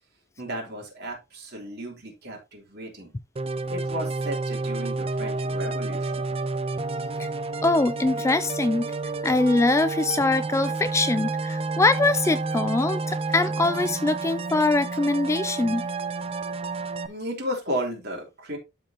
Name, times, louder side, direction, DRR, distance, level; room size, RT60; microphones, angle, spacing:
voice 1, 0.4-3.1 3.7-6.3 17.1-18.6, equal, 55° right, 3.3 m, -34 dB
sound 1, 3.4-17.1, right 3 dB, 30° right, 0.6 m, -30 dB
voice 2, 7.6-8.9 9.2-15.9, left 2 dB, 15° left, 0.3 m, -23 dB
12.0 x 4.5 x 3.0 m
head